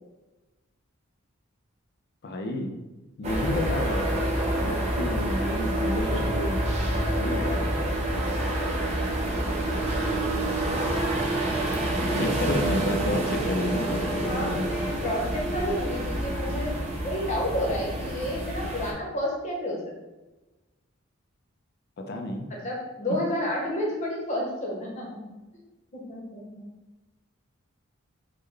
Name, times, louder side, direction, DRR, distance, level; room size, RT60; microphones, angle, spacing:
voice 1, 2.2-2.7 3.2-4.3 4.6-6.6 6.9-7.8 12.2-14.7 22.0-22.5, left 1 dB, 50° left, 4 dB, 0.4 m, -31 dB
sound 1, 3.2-18.9, right 1 dB, 30° right, 0.5 m, -27 dB
voice 2, 12.0-12.4 14.2-19.9 22.5-25.2 25.9-26.6, equal, 35° left, -2 dB, 0.8 m, -31 dB
3.6 x 2.1 x 3.2 m, 1.1 s
head